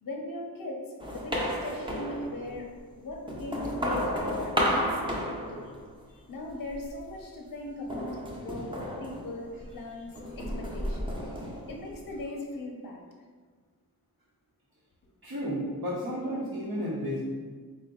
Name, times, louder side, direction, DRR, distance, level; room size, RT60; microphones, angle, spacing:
voice 1, 0.0-2.7 3.0-5.8 6.1-8.1 8.4-8.7 9.0-11.1 11.7-13.0, left 2 dB, 65° left, 0 dB, 0.6 m, -39 dB
sound 1, 1.0-2.6 3.1-6.1 6.5-7.1 7.9-9.8 10.1-12.2, equal, 15° right, 0.6 m, -32 dB
voice 2, 10.1-10.7 11.2-11.3 15.2-17.2, equal, 70° right, -10 dB, 0.9 m, -33 dB
3.8 x 2.2 x 3.5 m, 1.5 s
wide cardioid pair, 70°, 37 cm